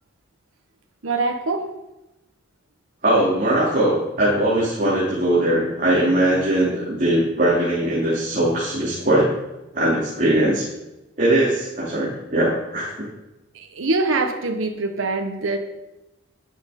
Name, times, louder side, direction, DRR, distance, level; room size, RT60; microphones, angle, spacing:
voice 1, 1.0-1.7 13.5-15.6, right 3 dB, 90° right, 4 dB, 1.1 m, -24 dB
voice 2, 3.0-9.3 9.7-10.7 11.2-13.1, right 1 dB, 40° right, -8 dB, 3.4 m, -20 dB
12.0 x 9.7 x 5.3 m, 0.97 s
head